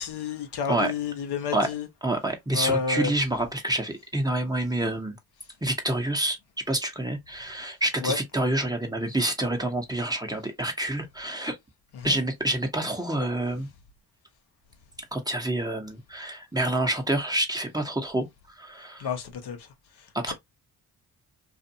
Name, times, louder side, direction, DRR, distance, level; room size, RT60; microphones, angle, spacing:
voice 1, 0.0-1.9 2.5-3.1 8.0-8.2 11.9-12.2 19.0-20.3, left 5 dB, 70° left, 0.8 m, -30 dB
voice 2, 2.0-5.2 5.6-6.4 6.7-11.6 12.0-13.7 15.1-18.3 18.6-19.1 20.2-20.3, right 1 dB, 10° right, 0.9 m, -27 dB
2.5 x 2.4 x 2.7 m
supercardioid pair, 60°, 41 cm